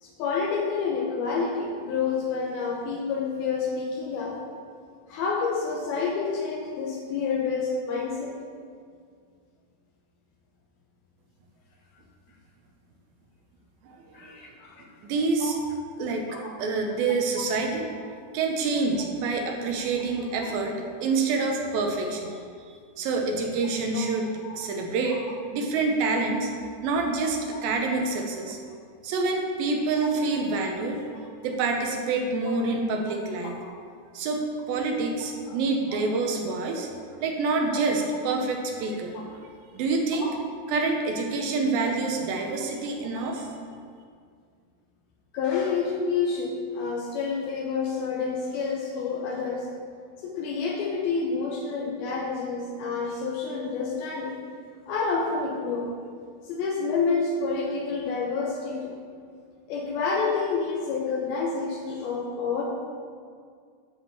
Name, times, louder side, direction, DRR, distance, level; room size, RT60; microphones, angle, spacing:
voice 1, 0.0-4.4 5.1-8.4 14.1-14.8 15.4-15.5 16.3-16.5 17.4-17.5 20.4-20.5 21.4-21.5 23.9-24.0 24.4-24.6 25.1-25.2 26.1-26.3 30.0-30.1 35.5-35.6 35.9-36.0 40.2-40.3 45.3-49.7 50.2-54.4 54.9-55.9 56.4-59.0 59.7-62.6, left 5 dB, 80° left, -1 dB, 2.6 m, -28 dB
voice 2, 13.8-14.4 15.0-15.6 16.0-16.3 16.6-17.9 18.3-22.4 23.0-24.3 24.5-25.2 25.5-26.5 26.8-28.6 29.0-31.0 31.4-33.5 34.1-36.9 37.2-39.3 39.7-40.3 40.7-43.5, right 3 dB, 75° right, 2 dB, 2.4 m, -27 dB
9.5 x 4.9 x 7.4 m, 2.1 s
omnidirectional pair, 4.6 m